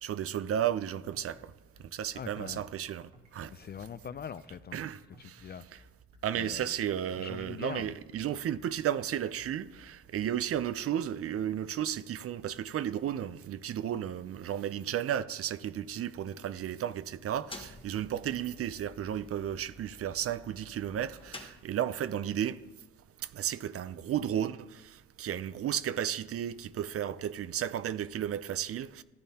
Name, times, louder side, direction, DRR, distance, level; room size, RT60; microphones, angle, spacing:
voice 1, 0.0-1.5 1.9-3.5 4.7-5.8 6.2-22.6 23.3-29.0, right 10 dB, 50° right, 0.5 m, -33 dB
sound 1, 0.9-10.7, right 1 dB, 70° right, 1.7 m, -58 dB
voice 2, 2.1-2.6 3.4-4.8 5.2-5.6 6.3-6.7 7.2-7.9, left 7 dB, 35° left, 0.4 m, -42 dB
sound 2, 17.1-22.2, left 2 dB, 15° left, 1.0 m, -51 dB
14.5 x 10.5 x 2.8 m
cardioid pair, 90°, 30 cm